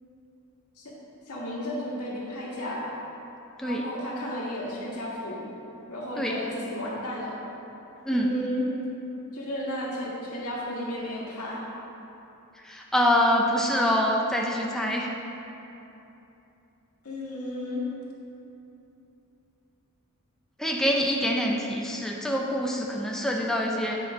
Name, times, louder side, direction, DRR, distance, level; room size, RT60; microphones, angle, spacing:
voice 1, 1.3-2.9 3.6-5.4 5.9-7.4 8.1-8.7 9.3-11.6 17.0-17.9, left 1 dB, 80° left, -5 dB, 1.7 m, -33 dB
voice 2, 12.6-15.1 20.6-24.0, equal, ahead, -1 dB, 0.4 m, -25 dB
8.4 x 4.2 x 5.1 m, 2.9 s
head